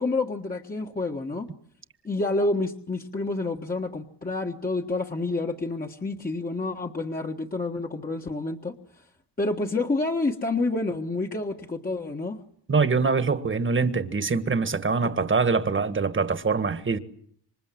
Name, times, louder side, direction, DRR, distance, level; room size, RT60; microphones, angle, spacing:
voice 1, 0.0-1.5 2.0-8.7 9.4-12.4, left 2 dB, 20° left, 1.6 m, -28 dB
voice 2, 12.7-17.0, right 4 dB, 30° right, 1.7 m, -24 dB
27.5 x 24.5 x 7.7 m
cardioid pair, 110°, 42 cm